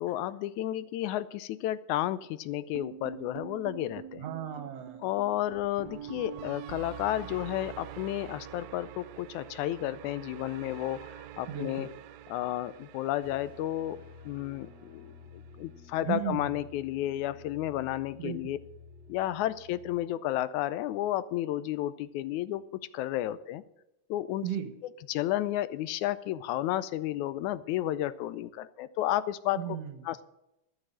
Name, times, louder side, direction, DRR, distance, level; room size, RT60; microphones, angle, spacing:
voice 1, 0.0-4.3 5.0-11.9 12.3-14.0 14.3-18.6 19.1-22.6 22.9-23.6 24.1-24.5 25.1-29.6 30.1-30.2, left 13 dB, 85° left, 15 dB, 2.1 m, -32 dB
sound 1, 2.8-15.0, right 12 dB, 80° right, 2.0 m, -46 dB
voice 2, 4.2-5.0 11.5-11.9 16.0-16.6 18.2-18.5 24.4-24.7 29.5-30.0, right 10 dB, 65° right, 9 dB, 2.1 m, -35 dB
sound 2, 13.2-20.0, left 5 dB, 30° left, 2.5 m, -52 dB
13.0 x 6.3 x 8.8 m, 0.87 s
omnidirectional pair, 3.3 m